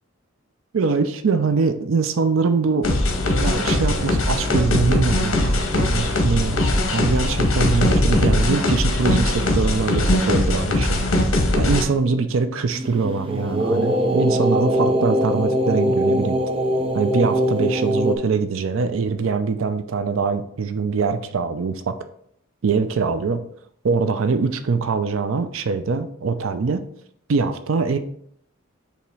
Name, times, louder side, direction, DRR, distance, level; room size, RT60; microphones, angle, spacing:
voice 1, 0.7-3.0 3.4-6.6 6.9-11.0 11.6-16.4 16.9-21.9 22.6-23.4 23.8-26.8 27.3-28.0, right 4 dB, 70° right, 9 dB, 0.5 m, -23 dB
sound 1, 2.8-11.8, left 1 dB, 70° left, 1.1 m, -20 dB
sound 2, 12.8-18.2, equal, 25° right, 0.6 m, -21 dB
7.0 x 2.9 x 4.6 m, 0.68 s
head